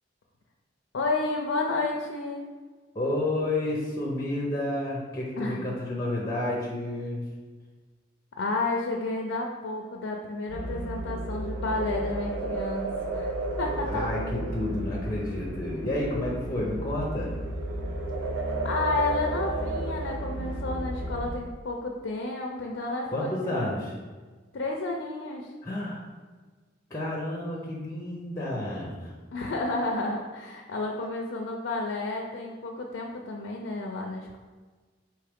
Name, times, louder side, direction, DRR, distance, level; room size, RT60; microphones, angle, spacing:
voice 1, 0.9-2.4 5.4-5.7 8.4-13.3 13.6-14.0 18.6-23.6 24.5-25.5 29.3-34.4, left 3 dB, 70° left, 0 dB, 0.4 m, -31 dB
voice 2, 2.9-7.2 13.9-17.3 23.1-23.9 25.6-26.0 26.9-29.1, left 1 dB, 15° left, -3 dB, 0.6 m, -30 dB
sound 1, 10.5-21.4, right 2 dB, 70° right, 0.6 m, -32 dB
4.7 x 3.0 x 3.5 m, 1.4 s
head